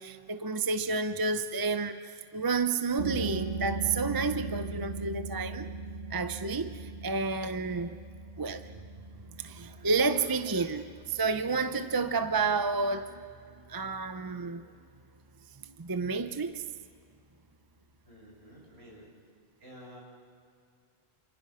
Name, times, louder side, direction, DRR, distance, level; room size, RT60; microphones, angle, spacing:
voice 1, 0.0-5.7 6.1-8.0 8.4-8.7 9.4-13.2 13.7-14.6 15.6-16.6, right 4 dB, 25° right, 9 dB, 0.7 m, -30 dB
sound 1, 3.0-14.4, right 3 dB, 90° right, 2.5 m, -40 dB
voice 2, 18.0-19.1 19.6-20.0, equal, 65° right, -3 dB, 7.1 m, -51 dB
28.0 x 27.5 x 5.7 m, 2.3 s
omnidirectional pair, 1.1 m